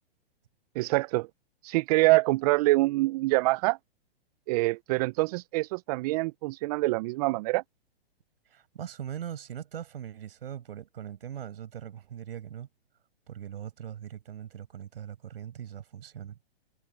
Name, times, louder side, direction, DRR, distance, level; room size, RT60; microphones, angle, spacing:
voice 1, 0.7-1.3 1.6-3.8 4.5-7.6, right 21 dB, 40° right, 0.7 m, -25 dB
voice 2, 8.5-12.7 13.3-16.4, right 9 dB, 70° right, 5.8 m, -40 dB
hypercardioid pair, 120°, 31 cm